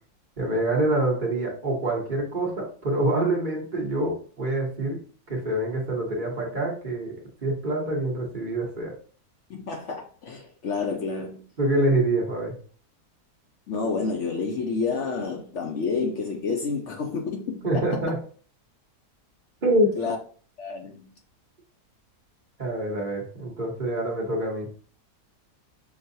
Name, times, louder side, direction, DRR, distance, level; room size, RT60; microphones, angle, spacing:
voice 1, 0.4-5.0 5.3-7.1 7.4-8.9 11.6-12.5 17.6-18.2 19.6-19.9 22.6-24.7, right 1 dB, 35° right, 1.1 m, -26 dB
voice 2, 9.5-11.4 13.7-17.8 20.0-20.2 20.6-21.1, left 4 dB, 60° left, 0.8 m, -29 dB
6.1 x 2.3 x 2.6 m
omnidirectional pair, 1.6 m